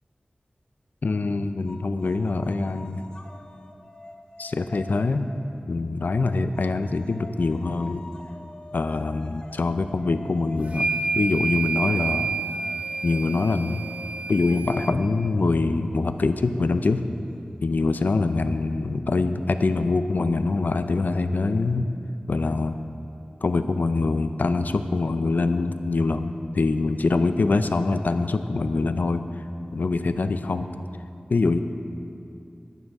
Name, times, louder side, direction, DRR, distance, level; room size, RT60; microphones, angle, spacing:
voice 1, 1.0-3.0 4.4-5.3 5.7-8.0 8.7-12.3 13.0-13.8 14.3-17.0 17.6-21.9 22.3-22.7 23.4-29.4 29.7-30.7 31.3-31.6, left 3 dB, 75° left, 9 dB, 0.5 m, -24 dB
sound 1, 1.7-6.0 6.5-17.9, left 1 dB, 30° left, 0.9 m, -47 dB
sound 2, 10.7-14.9, right 4 dB, 45° right, 0.8 m, -29 dB
13.0 x 11.5 x 3.6 m, 2.6 s
wide cardioid pair, 60°, 3 cm